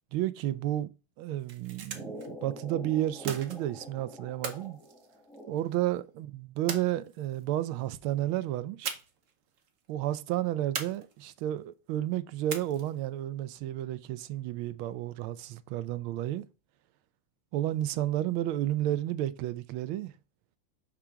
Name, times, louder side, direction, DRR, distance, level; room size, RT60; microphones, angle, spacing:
voice 1, 0.1-0.9 1.2-4.8 5.5-8.9 9.9-16.4 17.5-20.1, right 13 dB, 85° right, 1.4 m, -32 dB
sound 1, 1.4-2.3 3.2-3.9 4.4-5.7 6.7-7.4 8.8-9.3 9.6-9.7 10.8-11.5 12.5-13.1, right 6 dB, 50° right, 1.0 m, -39 dB
sound 2, 1.9-6.0, equal, ahead, 0.4 m, -46 dB
5.9 x 3.7 x 5.6 m
omnidirectional pair, 2.2 m